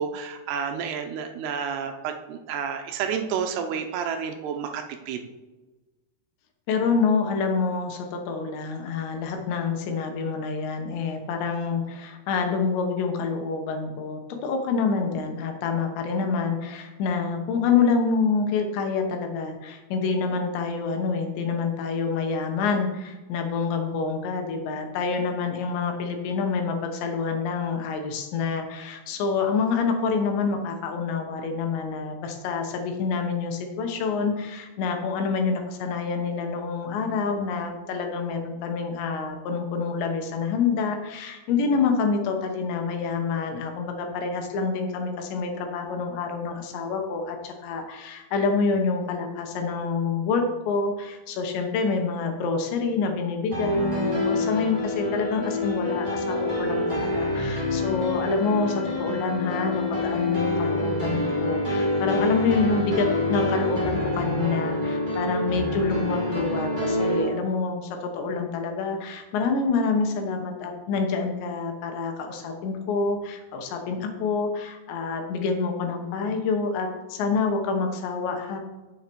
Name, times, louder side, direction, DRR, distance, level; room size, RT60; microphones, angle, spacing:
voice 1, 0.0-5.2, right 7 dB, 80° right, 6 dB, 2.7 m, -30 dB
voice 2, 6.7-78.6, left 4 dB, 85° left, 4 dB, 3.3 m, -27 dB
sound 1, 53.5-67.2, left 1 dB, 25° right, 1.1 m, -27 dB
9.2 x 7.4 x 4.5 m, 1.2 s
omnidirectional pair, 5.0 m